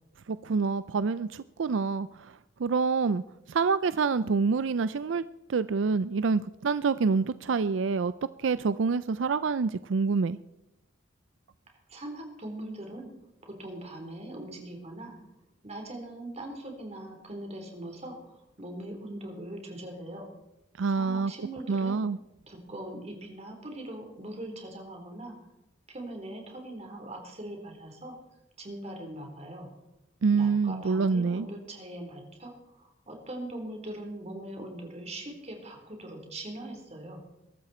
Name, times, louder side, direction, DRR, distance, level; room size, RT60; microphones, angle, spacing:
voice 1, 0.3-2.3 2.6-3.2 3.5-5.2 5.5-8.1 8.4-10.4 20.8-21.3 21.7-22.2 30.2-31.5, right 4 dB, 85° right, 15 dB, 0.5 m, -26 dB
voice 2, 11.9-13.1 13.4-15.1 15.6-20.2 20.9-22.0 22.5-25.3 25.9-28.1 28.6-29.7 30.3-37.2, right 1 dB, 35° right, 2 dB, 3.9 m, -41 dB
22.5 x 12.5 x 4.3 m, 0.93 s
head